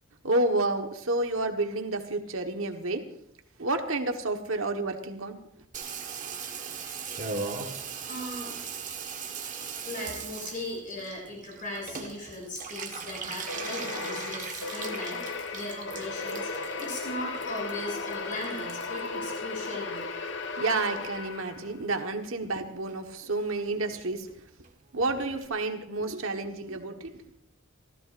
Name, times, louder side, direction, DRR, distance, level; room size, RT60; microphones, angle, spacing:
voice 1, 0.2-3.0 3.6-5.4 20.6-24.3 24.9-27.1, right 2 dB, 70° right, 5 dB, 1.4 m, -30 dB
Water tap faucet / Bathtub (filling or washing), 5.7-20.3 20.6-21.3 21.6-21.7 21.9-22.0 22.2-22.6 22.9-23.0 23.2-23.3 23.6-23.7 23.9-24.0 24.2-24.3 24.6-24.7 25.0-25.1 25.4-25.5, right 5 dB, 40° right, 1.5 m, -39 dB
voice 2, 8.0-8.6 9.8-20.1, left 1 dB, 40° left, -1 dB, 7.8 m, -38 dB
sound 1, 13.5-21.8, left 4 dB, 60° left, 1.2 m, -36 dB
27.5 x 15.0 x 2.6 m, 0.72 s
head